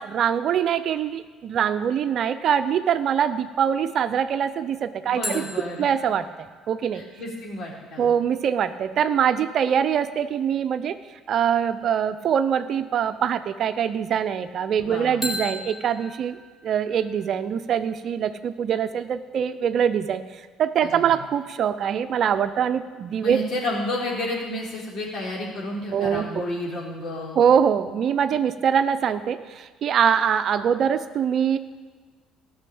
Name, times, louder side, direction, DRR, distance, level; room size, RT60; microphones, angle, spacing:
voice 1, 0.0-5.4 5.8-6.3 6.7-7.0 8.0-11.0 11.3-16.4 16.6-20.2 20.6-23.4 25.9-26.3 27.4-31.6, right 8 dB, 60° right, 11 dB, 0.6 m, -23 dB
voice 2, 5.0-5.9 6.9-8.1 14.8-15.3 20.8-21.1 23.2-27.4, left 1 dB, 60° left, -3 dB, 4.0 m, -31 dB
sound 1, 5.2-8.8 15.2-17.9, left 1 dB, 15° left, 3.8 m, -38 dB
14.0 x 6.4 x 8.6 m, 1.4 s
hypercardioid pair, 65°, 0 cm